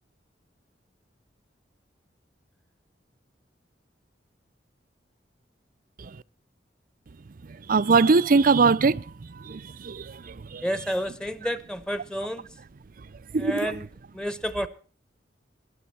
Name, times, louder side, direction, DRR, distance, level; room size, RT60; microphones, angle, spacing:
voice 1, 7.5-10.7 13.0-13.1 13.3-13.8, right 4 dB, 50° right, 0.5 m, -23 dB
voice 2, 10.6-12.5 13.4-13.9 14.1-14.7, equal, 5° left, 1.0 m, -30 dB
21.0 x 9.4 x 4.2 m
head